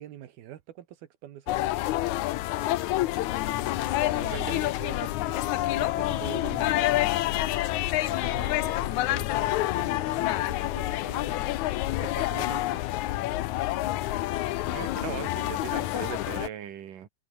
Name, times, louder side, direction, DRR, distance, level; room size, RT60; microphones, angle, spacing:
voice 1, 0.0-1.7 4.1-11.5 12.0-12.9, right 12 dB, 80° right, 3.5 m, -44 dB
sound 1, 1.5-16.5, left 16 dB, 80° left, 1.8 m, -28 dB
voice 2, 4.3-4.7 14.7-17.1, right 9 dB, 65° right, 3.6 m, -38 dB
omnidirectional pair, 4.3 m